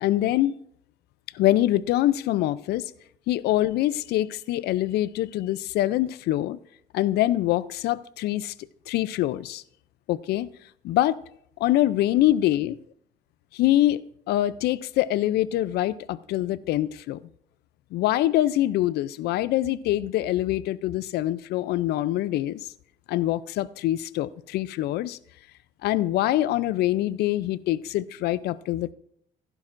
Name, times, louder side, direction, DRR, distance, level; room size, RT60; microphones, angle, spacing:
voice 1, 0.0-0.5 1.3-2.9 3.3-6.6 6.9-8.5 8.9-9.6 10.1-10.5 10.8-11.2 11.6-12.8 13.5-14.0 14.3-17.2 17.9-22.6 23.1-25.2 25.8-28.9, left 14 dB, 75° left, 0.5 m, -24 dB
15.0 x 12.0 x 2.5 m
cardioid pair, 110°, 17 cm